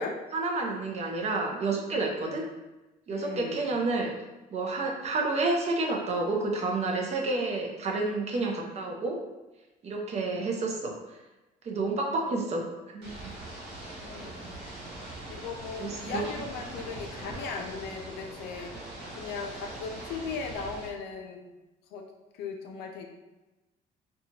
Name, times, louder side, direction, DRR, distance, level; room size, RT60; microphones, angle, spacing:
voice 1, 0.3-2.4 3.1-4.1 4.5-9.2 9.8-10.9 11.7-12.6 12.9-13.1 15.8-16.2, right 3 dB, 40° right, 0 dB, 0.5 m, -29 dB
voice 2, 2.0-2.4 3.1-3.6 14.0-14.6 15.3-18.7 19.2-21.4 21.9-22.0 22.4-23.1, left 5 dB, 80° left, 3 dB, 0.5 m, -38 dB
Ocean / Boat Water vehicle, 13.0-20.9, right 2 dB, 85° right, 1.0 m, -42 dB
2.7 x 2.3 x 2.7 m, 1.1 s
cardioid pair, 110°, 17 cm